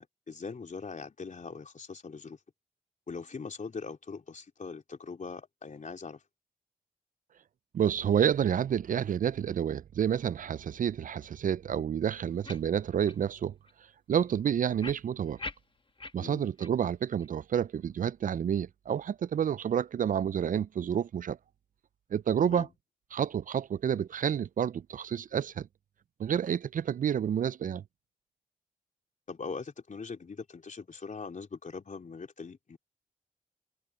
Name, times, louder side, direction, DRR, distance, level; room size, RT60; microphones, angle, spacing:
voice 1, 0.0-2.4 3.1-6.2 16.2-16.5 22.5-22.7 29.3-32.8, left 4 dB, 55° left, 3.5 m, -41 dB
voice 2, 7.7-13.5 14.1-15.4 16.1-21.4 22.1-22.7 23.1-25.7 26.2-27.8, right 8 dB, 60° right, 0.4 m, -29 dB
sound 1, 12.4-12.6 13.0-13.2 13.7-13.8 14.8-16.1 16.6-16.7 17.2-17.3, left 2 dB, 35° left, 1.6 m, -41 dB
supercardioid pair, 45°, 16 cm